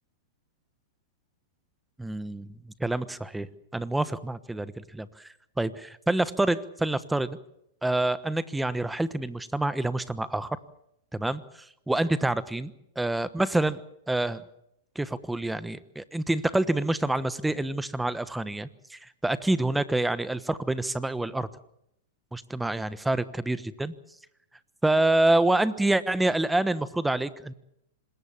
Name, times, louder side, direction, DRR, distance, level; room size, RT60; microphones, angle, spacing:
voice 1, 2.0-5.3 5.6-7.4 7.8-10.6 11.1-13.8 14.1-14.4 14.9-21.5 22.3-23.9 24.8-27.5, right 2 dB, 5° right, 15 dB, 1.2 m, -27 dB
26.0 x 21.0 x 7.3 m, 0.78 s
hypercardioid pair, 115°, 0 cm